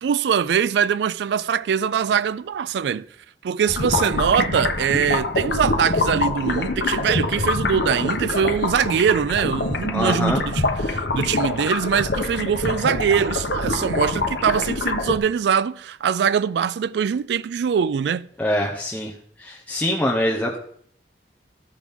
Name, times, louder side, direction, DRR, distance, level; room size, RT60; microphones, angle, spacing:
voice 1, 0.0-3.1 3.4-18.2, right 7 dB, 70° right, 0.3 m, -22 dB
sound 1, 3.7-15.2, left 2 dB, 65° left, 0.9 m, -25 dB
voice 2, 9.9-10.4 18.4-19.1 19.4-20.6, left 1 dB, 10° left, 0.8 m, -23 dB
14.0 x 6.0 x 3.5 m
head